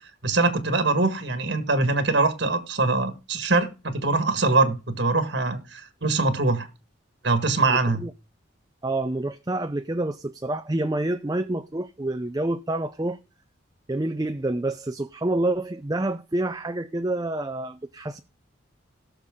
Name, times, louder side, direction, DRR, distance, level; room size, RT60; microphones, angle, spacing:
voice 1, 0.2-6.7 7.2-8.0, right 3 dB, 60° right, 1.7 m, -23 dB
voice 2, 7.7-8.1 8.8-13.2 13.9-18.2, right 2 dB, 20° right, 0.5 m, -28 dB
17.5 x 6.8 x 3.7 m
head